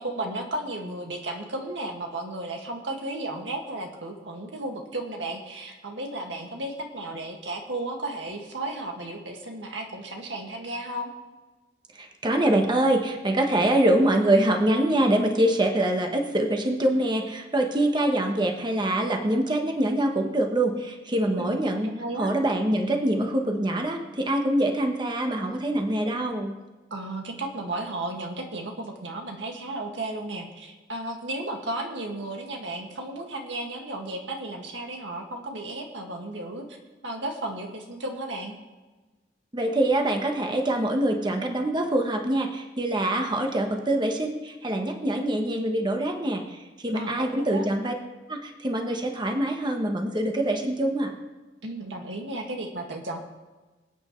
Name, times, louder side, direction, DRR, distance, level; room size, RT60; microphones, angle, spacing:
voice 1, 0.0-11.1 21.4-22.3 26.9-36.6 37.0-38.6 46.9-47.6 51.6-53.2, right 2 dB, 85° right, 2 dB, 1.9 m, -34 dB
voice 2, 11.9-21.9 22.2-26.6 39.5-47.9 48.3-51.1, right 1 dB, 25° right, 3 dB, 1.1 m, -24 dB
25.5 x 8.8 x 3.2 m, 1.2 s
head